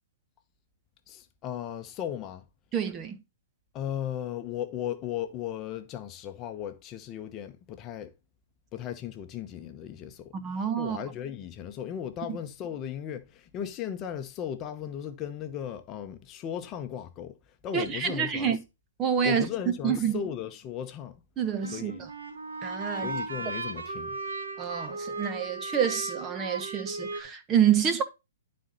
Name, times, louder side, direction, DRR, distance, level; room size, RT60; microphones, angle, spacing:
voice 1, 1.1-2.4 3.7-8.1 8.7-10.3 10.8-17.4 17.6-18.6 19.2-21.2 21.7-22.0 23.0-24.2, left 9 dB, 30° left, 0.9 m, -36 dB
voice 2, 2.7-3.2 10.3-11.0 12.3-12.4 17.7-18.6 19.0-19.5 19.8-20.2 21.4-21.9 22.6-23.1 24.6-28.0, right 8 dB, 25° right, 1.1 m, -27 dB
sound 1, 21.6-27.2, right 3 dB, 85° right, 1.9 m, -36 dB
11.5 x 4.3 x 4.0 m
hypercardioid pair, 135°, 0 cm